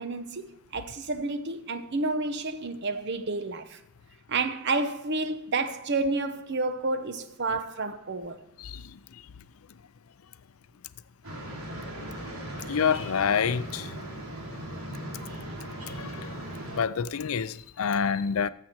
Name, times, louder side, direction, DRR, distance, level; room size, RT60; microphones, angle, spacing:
voice 1, 0.0-3.8 4.3-8.4, right 3 dB, 50° right, 0.9 m, -30 dB
sound 1, 11.2-16.8, right 1 dB, 85° right, 2.9 m, -38 dB
voice 2, 12.7-13.9 15.9-16.3 16.8-18.5, left 6 dB, 75° left, 0.5 m, -27 dB
13.0 x 7.6 x 4.5 m
head